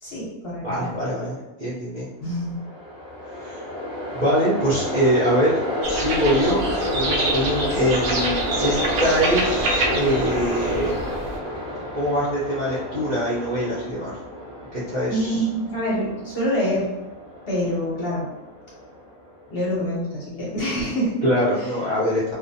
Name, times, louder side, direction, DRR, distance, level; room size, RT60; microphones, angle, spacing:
voice 1, 0.0-0.9 2.2-2.6 15.1-16.9 17.5-18.3 19.5-21.1 21.5-21.7, equal, 50° left, -6 dB, 0.8 m, -26 dB
voice 2, 0.6-2.1 3.4-3.6 4.1-5.5 5.9-10.9 12.0-14.2 14.7-15.4 21.2-22.3, equal, 45° right, -11 dB, 0.7 m, -23 dB
Train, 2.4-19.6, equal, 5° right, 0.5 m, -30 dB
sound 1, 5.8-11.4, right 2 dB, 70° right, 0.9 m, -27 dB
2.5 x 2.1 x 2.6 m, 1.0 s
omnidirectional pair, 1.5 m